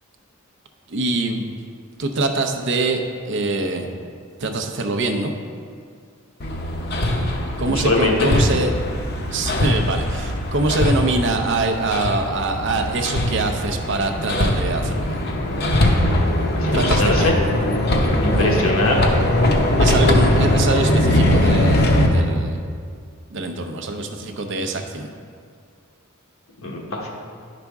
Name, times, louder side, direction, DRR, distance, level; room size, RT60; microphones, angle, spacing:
voice 1, 0.9-1.5 2.0-3.9 4.4-5.3 7.6-8.7 9.3-15.2 16.7-17.3 18.3-18.5 19.8-22.6 23.3-25.1, right 2 dB, 60° right, 5 dB, 0.6 m, -24 dB
Hammer, 6.4-22.1, left 1 dB, 50° left, 0.8 m, -20 dB
voice 2, 7.6-8.3 16.6-17.3 18.2-19.1 26.6-27.1, left 2 dB, 80° left, -1 dB, 1.3 m, -21 dB
10.5 x 5.0 x 3.5 m, 2.2 s
head